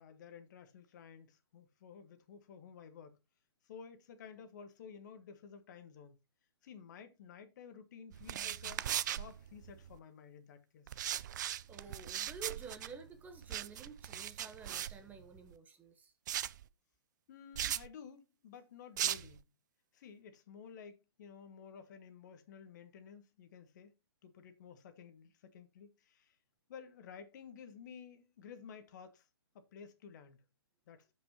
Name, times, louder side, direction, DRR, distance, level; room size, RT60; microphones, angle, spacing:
voice 1, 0.0-3.2 3.6-6.2 6.6-11.0 17.3-19.4 19.9-23.9 24.2-26.4 26.7-29.3 29.5-30.4 30.9-31.1, left 7 dB, 45° left, 1.4 m, -53 dB
sound 1, 8.1-10.0 10.9-15.5 16.3-16.6 17.6-17.9 19.0-19.4, right 11 dB, 50° right, 0.5 m, -39 dB
voice 2, 11.3-16.1, right 5 dB, 10° right, 1.1 m, -51 dB
15.0 x 5.4 x 2.9 m
hypercardioid pair, 135°, 13 cm